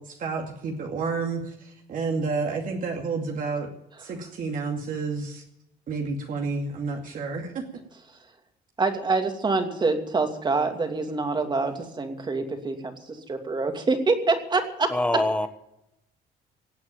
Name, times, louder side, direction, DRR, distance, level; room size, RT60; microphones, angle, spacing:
voice 1, 0.0-3.7 4.0-5.4 5.9-7.6, right 4 dB, 55° right, 1 dB, 2.4 m, -30 dB
voice 2, 8.8-14.9, right 3 dB, 25° right, 6 dB, 2.7 m, -26 dB
voice 3, 14.9-15.5, left 1 dB, 5° left, 11 dB, 1.3 m, -24 dB
17.5 x 8.6 x 8.9 m, 0.85 s
cardioid pair, 110°, 17 cm